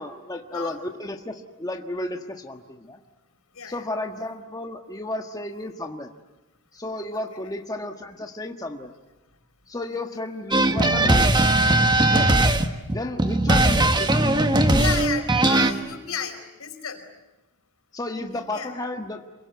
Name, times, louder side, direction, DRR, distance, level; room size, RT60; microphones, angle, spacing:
voice 1, 0.0-3.0 3.6-6.1 6.7-8.9 9.7-11.3 12.0-12.3 12.9-14.5 17.9-19.2, left 1 dB, 15° left, 3 dB, 1.5 m, -33 dB
sound 1, 10.5-15.7, right 2 dB, 20° right, 1.5 m, -19 dB
voice 2, 14.7-17.0 18.3-18.7, left 6 dB, 80° left, 5 dB, 5.1 m, -33 dB
27.0 x 23.5 x 9.4 m, 1.0 s
head